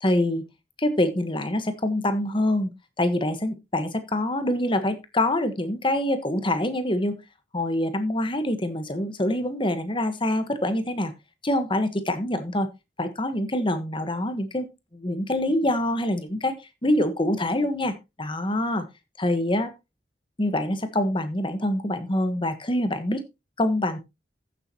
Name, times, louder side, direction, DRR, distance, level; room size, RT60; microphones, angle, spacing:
voice 1, 0.0-0.4 0.8-2.7 3.0-7.2 7.5-11.1 11.4-12.7 13.0-14.7 14.9-16.6 16.8-18.8 19.2-19.7 20.4-23.2 23.6-24.0, left 1 dB, 30° left, 10 dB, 1.3 m, -25 dB
14.5 x 7.1 x 2.9 m, 0.24 s
head